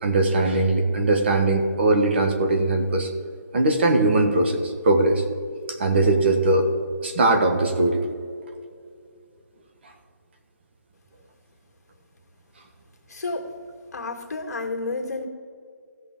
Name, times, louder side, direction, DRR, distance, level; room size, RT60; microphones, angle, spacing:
voice 1, 0.0-3.1 3.5-5.2 5.7-6.7 7.0-8.0, right 2 dB, 35° right, 4 dB, 1.1 m, -20 dB
voice 2, 13.1-13.5 13.9-15.3, left 3 dB, 60° left, 2 dB, 1.8 m, -30 dB
16.5 x 6.6 x 3.6 m, 2.3 s
hypercardioid pair, 170°, 10 cm